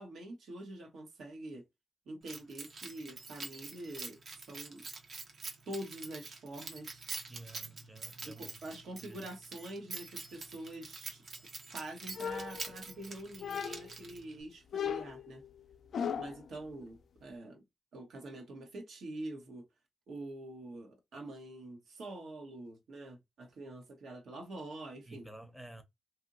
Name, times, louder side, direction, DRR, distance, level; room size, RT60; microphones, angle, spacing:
voice 1, 0.0-1.6 2.1-4.8 5.7-7.0 8.2-11.2 11.7-15.4 16.2-17.6 17.9-19.6 20.1-25.3, right 1 dB, 80° right, 1.1 m, -45 dB
Keys jangling, 2.3-14.4, right 4 dB, 60° right, 0.8 m, -46 dB
voice 2, 7.3-8.5 9.0-9.2 25.1-25.8, right 2 dB, 5° right, 0.7 m, -51 dB
sound 1, 12.1-13.0 13.4-14.0 14.7-16.5, left 8 dB, 70° left, 0.3 m, -38 dB
2.8 x 2.6 x 2.5 m
cardioid pair, 75°, 0 cm